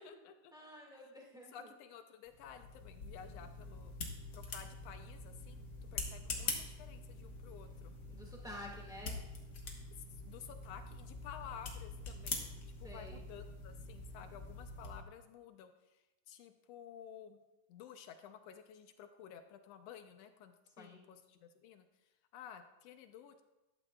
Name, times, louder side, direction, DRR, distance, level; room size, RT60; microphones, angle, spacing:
voice 1, 0.0-0.5 0.9-1.1 1.5-3.9 4.3-5.7 5.9-7.9 10.2-12.5 12.8-17.4 17.7-21.9 22.3-23.4, left 8 dB, 80° left, 8 dB, 1.4 m, -53 dB
voice 2, 0.5-1.7 8.0-9.2 12.8-13.3 20.8-21.1, left 1 dB, ahead, -2 dB, 0.9 m, -51 dB
sound 1, 2.3-15.0, left 3 dB, 55° left, 1.2 m, -45 dB
13.0 x 12.0 x 2.3 m, 1.0 s
omnidirectional pair, 3.5 m